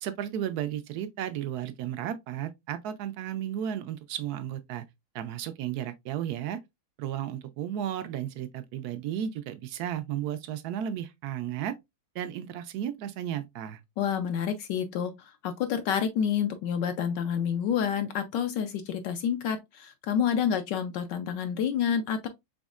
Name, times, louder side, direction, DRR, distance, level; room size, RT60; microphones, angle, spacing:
voice 1, 0.0-4.8 5.1-6.6 7.0-11.7 12.1-13.8, right 10 dB, 75° right, 0.9 m, -34 dB
voice 2, 14.0-22.3, left 8 dB, 75° left, 1.1 m, -28 dB
5.2 x 3.5 x 2.4 m
omnidirectional pair, 2.1 m